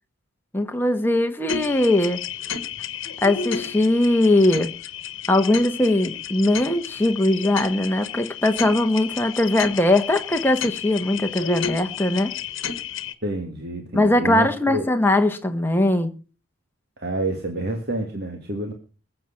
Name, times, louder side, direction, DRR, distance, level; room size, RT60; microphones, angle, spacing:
voice 1, 0.5-2.2 3.2-4.7 5.3-12.3 13.9-16.1, left 1 dB, 10° left, 1.2 m, -20 dB
sound 1, 1.5-13.1, left 7 dB, 65° left, 1.3 m, -32 dB
voice 2, 13.2-14.9 17.0-18.7, right 1 dB, 50° right, 1.9 m, -28 dB
21.0 x 7.9 x 5.7 m
head